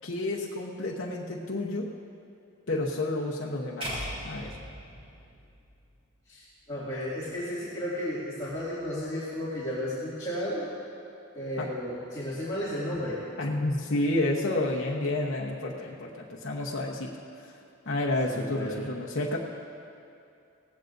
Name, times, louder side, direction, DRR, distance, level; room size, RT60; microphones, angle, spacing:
voice 1, 0.0-1.9 2.7-4.6 11.6-11.7 13.4-17.1 17.4-17.6 17.8-19.4, left 2 dB, 65° left, -3 dB, 0.9 m, -30 dB
sound 1, 3.8-6.1, equal, 30° right, 3.7 m, -38 dB
voice 2, 6.3-10.7 11.3-13.2 18.3-18.9, equal, 20° left, -11 dB, 2.3 m, -33 dB
18.0 x 15.5 x 2.6 m, 2.6 s
head